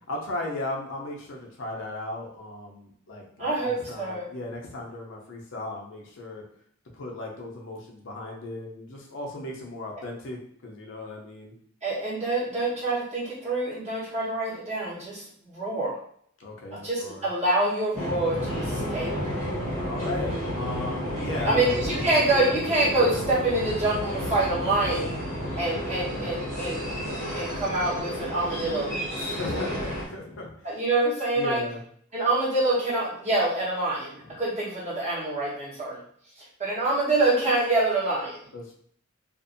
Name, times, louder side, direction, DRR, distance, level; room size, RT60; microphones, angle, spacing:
voice 1, 0.1-6.4 6.9-11.5 16.4-17.3 19.8-21.7 29.1-30.7 31.3-31.8 34.2-34.3 38.5-38.7, left 2 dB, 65° left, 0 dB, 0.6 m, -36 dB
voice 2, 3.4-4.3 11.8-16.0 16.7-19.1 21.4-25.1 25.6-26.8 27.3-29.0 29.5-29.6 30.6-31.6 32.1-36.0 36.6-38.4, right 2 dB, 35° right, -7 dB, 1.1 m, -26 dB
sound 1, 17.9-30.1, equal, 70° right, 1.3 m, -31 dB
2.6 x 2.5 x 2.5 m, 0.63 s
head